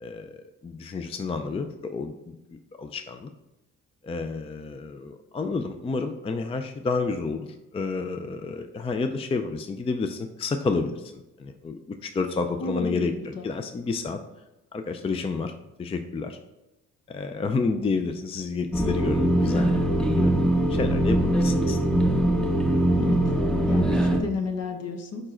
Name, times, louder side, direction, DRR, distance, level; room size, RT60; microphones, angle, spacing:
voice 1, 0.0-3.3 4.0-7.5 7.7-11.1 11.4-14.2 14.7-15.5 15.8-16.4 17.1-20.3 20.7-21.8, left 4 dB, 20° left, 7 dB, 0.4 m, -30 dB
voice 2, 12.6-13.5 22.9-23.2 23.7-25.3, left 3 dB, 55° left, 5 dB, 1.0 m, -32 dB
sound 1, 18.7-24.2, right 1 dB, 5° left, 0.8 m, -22 dB
4.9 x 4.5 x 4.3 m, 0.98 s
cardioid pair, 90°, 30 cm